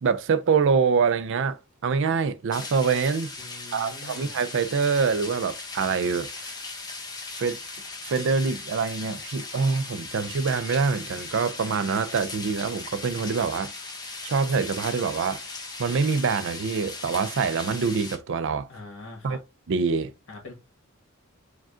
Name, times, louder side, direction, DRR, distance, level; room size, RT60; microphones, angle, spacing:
voice 1, 0.0-3.3 3.7-6.5 7.4-7.6 8.0-13.7 14.2-15.4 15.8-18.7 19.2-19.4 19.7-20.1, right 5 dB, 60° right, 0.4 m, -25 dB
sound 1, 2.5-18.2, left 3 dB, 20° left, 0.8 m, -38 dB
voice 2, 3.4-4.3 18.7-19.4 20.3-20.5, left 2 dB, 65° left, 1.7 m, -43 dB
4.9 x 2.3 x 3.6 m
head